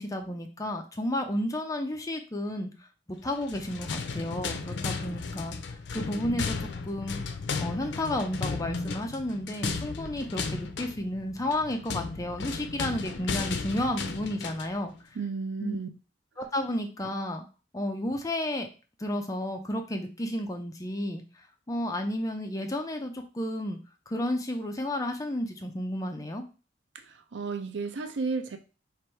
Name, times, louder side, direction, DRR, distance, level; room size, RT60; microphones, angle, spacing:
voice 1, 0.0-2.7 3.2-5.6 5.9-6.6 6.8-7.2 7.6-14.9 15.6-15.8 16.4-17.5 17.7-18.7 19.0-21.2 21.7-23.8 24.1-26.4, left 1 dB, 20° left, 0.5 m, -32 dB
sound 1, 3.4-14.8, left 4 dB, 75° left, 0.5 m, -35 dB
voice 2, 15.2-15.9 27.0-28.6, right 4 dB, 85° right, 0.5 m, -33 dB
3.4 x 2.6 x 4.4 m
head